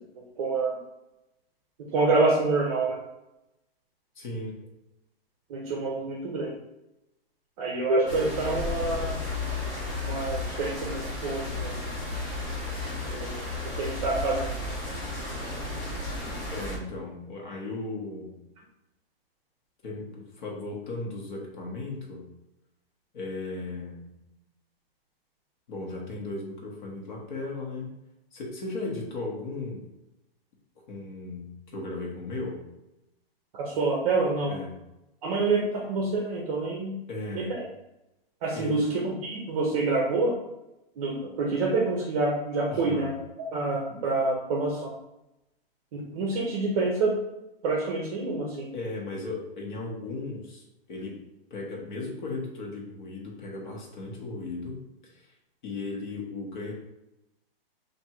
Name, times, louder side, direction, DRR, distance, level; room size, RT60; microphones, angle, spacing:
voice 1, 0.4-0.8 1.9-3.0 5.5-6.5 7.6-9.2 10.0-11.8 13.1-14.5 33.5-34.6 35.2-37.0 37.3-37.7 38.4-40.4 41.0-43.1 43.4-44.9 45.9-47.2 47.6-48.7, right 3 dB, 40° right, -2 dB, 0.7 m, -27 dB
voice 2, 4.1-4.5 16.5-18.4 19.8-22.3 23.1-24.1 25.7-27.9 28.3-29.9 30.9-32.6 34.5-34.8 37.1-37.5 38.5-38.9 42.7-43.1 48.7-51.2 51.5-55.3 55.6-56.7, left 2 dB, 50° left, -1 dB, 1.2 m, -36 dB
sound 1, 8.1-16.8, left 2 dB, 15° left, 0.6 m, -33 dB
3.5 x 2.6 x 4.3 m, 0.92 s
hypercardioid pair, 155°, 30 cm